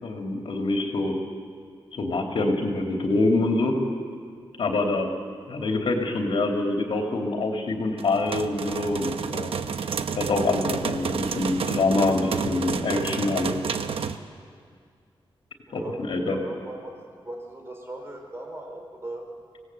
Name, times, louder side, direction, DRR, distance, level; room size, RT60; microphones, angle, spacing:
voice 1, 0.0-1.2 1.9-3.7 4.6-5.1 5.5-9.5 10.2-13.5 15.7-15.8 16.1-16.4, left 2 dB, 70° left, 2 dB, 3.4 m, -25 dB
sound 1, 8.0-14.2, right 6 dB, 85° right, 1.0 m, -30 dB
voice 2, 15.7-16.9 17.2-19.3, right 1 dB, 25° right, 2 dB, 4.9 m, -38 dB
26.0 x 18.5 x 8.2 m, 2.1 s
wide cardioid pair, 120°, 9 cm